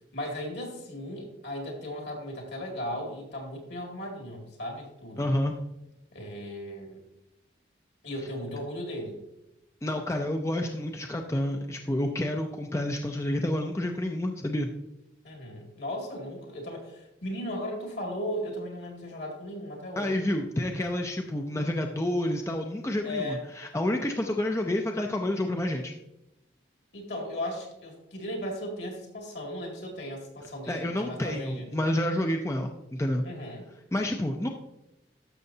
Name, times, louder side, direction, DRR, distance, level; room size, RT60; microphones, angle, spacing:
voice 1, 0.1-5.3 6.1-7.0 8.0-9.2 15.2-20.2 23.0-23.4 26.9-31.7 33.2-33.6, equal, 65° left, 1 dB, 2.3 m, -36 dB
voice 2, 5.2-5.6 9.8-14.7 20.0-25.9 30.7-33.2 33.9-34.5, left 1 dB, 15° left, 3 dB, 0.4 m, -29 dB
12.0 x 6.8 x 2.8 m, 0.92 s
head